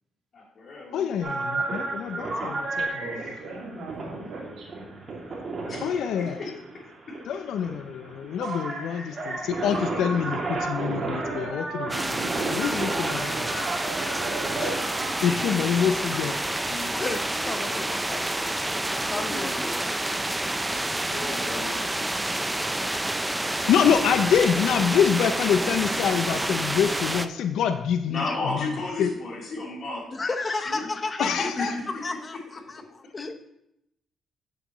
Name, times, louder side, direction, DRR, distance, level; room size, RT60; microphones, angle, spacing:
voice 1, 0.3-1.1 5.7-6.5 7.1-7.2 8.4-8.6 15.2-22.5 23.5-23.8 28.1-30.2 30.7-30.9 31.2-32.2, left 2 dB, 55° left, -4 dB, 3.2 m, -36 dB
voice 2, 0.9-2.9 5.8-6.4 7.3-12.2 12.5-13.4 14.6-14.7 15.2-16.4 23.7-28.2 28.5-28.6 29.0-29.1 31.2-31.7, left 8 dB, 80° left, 8 dB, 0.5 m, -25 dB
sound 1, 1.2-15.1, right 3 dB, 45° right, 2.5 m, -32 dB
voice 3, 3.0-5.2, right 2 dB, 75° right, -4 dB, 2.1 m, -40 dB
sound 2, 11.9-27.3, right 1 dB, 10° right, 0.4 m, -29 dB
voice 4, 17.0-18.3 18.9-19.7 28.3-28.4 30.1-31.7 32.0-32.4 32.9-33.4, left 3 dB, 30° left, 8 dB, 0.8 m, -32 dB
8.1 x 7.7 x 3.0 m, 0.81 s
cardioid pair, 90°, 0 cm